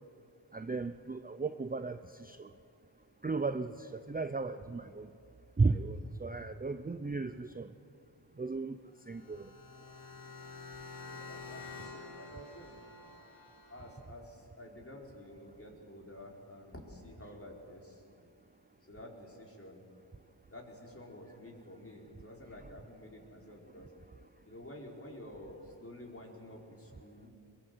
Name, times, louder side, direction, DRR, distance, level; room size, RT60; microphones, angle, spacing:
voice 1, 0.5-2.5 3.2-5.1 5.6-7.7 8.4-8.8 9.1-9.5, right 3 dB, 20° right, 10 dB, 0.6 m, -35 dB
sound 1, 8.9-14.0, left 4 dB, 75° left, 6.0 m, -49 dB
voice 2, 10.8-12.8 13.7-18.0 18.9-19.8 20.5-23.9 24.4-27.3, left 1 dB, 30° left, 0 dB, 4.8 m, -50 dB
23.0 x 22.0 x 8.0 m, 2.6 s
wide cardioid pair, 70°, 46 cm